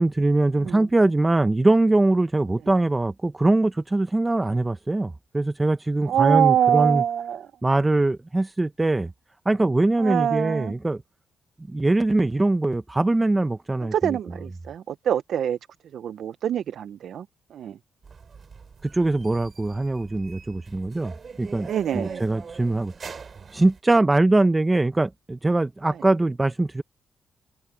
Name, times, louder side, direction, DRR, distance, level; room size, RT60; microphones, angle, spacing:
voice 1, 0.0-7.0 7.6-9.1 9.4-11.0 11.7-14.2 18.8-21.1 21.4-22.9 23.5-26.8, right 2 dB, 15° right, 0.9 m, -22 dB
voice 2, 6.1-7.5 10.0-10.7 13.8-15.6 15.9-17.3 17.5-17.8 21.6-22.2, right 9 dB, 75° right, 0.5 m, -24 dB
sound 1, 18.0-23.8, right 5 dB, 40° right, 5.1 m, -43 dB
cardioid pair, 115°, 0 cm